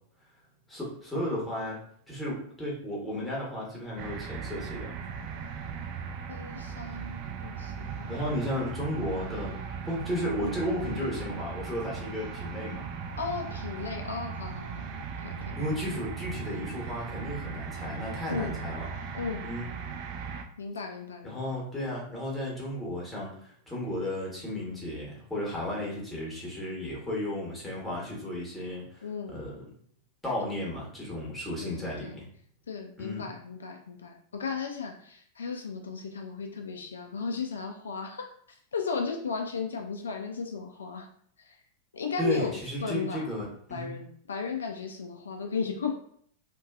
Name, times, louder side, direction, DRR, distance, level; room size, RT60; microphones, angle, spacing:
voice 1, 0.7-1.8 2.1-5.0 8.1-9.6 9.8-12.8 15.6-18.9 19.4-19.7 21.2-29.6 30.2-32.3 33.0-33.3 42.2-43.9, left 1 dB, 5° left, -5 dB, 1.0 m, -34 dB
sound 1, 4.0-20.4, right 6 dB, 45° right, 0.3 m, -38 dB
voice 2, 6.3-8.1 10.4-10.6 13.2-14.9 15.2-15.5 18.3-18.5 19.1-19.4 20.6-21.4 29.0-29.4 30.4-30.5 31.6-32.2 32.7-38.3 38.7-41.1 41.4-41.6 41.9-42.5 42.8-43.2 43.7-45.9, left 5 dB, 70° left, 2 dB, 0.3 m, -35 dB
2.6 x 2.2 x 2.3 m, 0.62 s
figure-of-eight pair, 90°, 0 cm